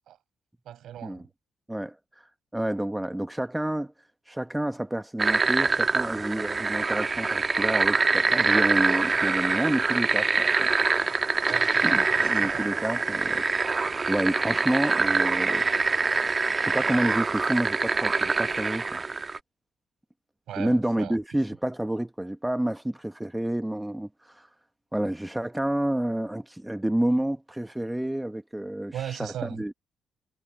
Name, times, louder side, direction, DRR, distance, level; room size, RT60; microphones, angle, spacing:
voice 1, 0.6-1.3 11.5-12.7 20.5-21.2 28.9-29.8, right 11 dB, 75° right, 6.1 m, -38 dB
voice 2, 1.7-2.2 2.5-3.9 4.3-10.7 11.8-13.4 14.1-16.2 16.6-19.0 20.6-24.5 24.9-29.7, right 1 dB, 5° right, 1.2 m, -29 dB
sound 1, 5.2-19.4, right 4 dB, 30° right, 1.3 m, -24 dB
cardioid pair, 90°, 0 cm